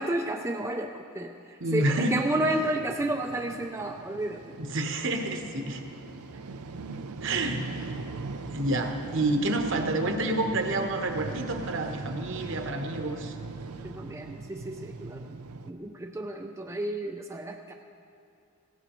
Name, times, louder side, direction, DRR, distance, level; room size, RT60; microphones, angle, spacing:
voice 1, 0.0-4.6 13.8-15.4 15.7-17.7, right 1 dB, 15° right, 2 dB, 0.4 m, -31 dB
voice 2, 1.6-2.2 4.6-5.8 7.2-7.9 8.5-13.3, right 2 dB, 55° right, 4 dB, 1.1 m, -29 dB
sound 1, 1.9-15.7, right 3 dB, 85° right, 0.6 m, -40 dB
18.0 x 16.0 x 3.1 m, 2.5 s
head